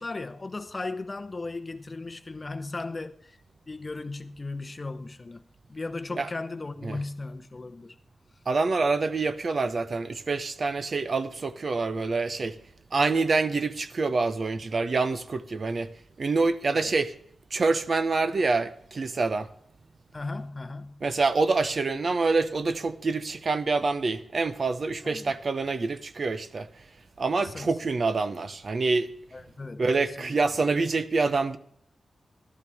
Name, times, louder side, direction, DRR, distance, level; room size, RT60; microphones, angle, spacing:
voice 1, 0.0-3.4 3.7-5.4 5.7-8.0 16.7-16.9 20.1-21.0 25.0-25.4 27.4-27.8 29.3-30.4, left 3 dB, 30° left, 0.8 m, -37 dB
voice 2, 8.5-12.6 12.9-15.9 16.2-17.2 17.5-19.5 21.0-26.7 27.2-29.1 29.8-31.6, right 3 dB, 50° right, 0.9 m, -26 dB
14.0 x 12.5 x 3.5 m
wide cardioid pair, 95°, 0 cm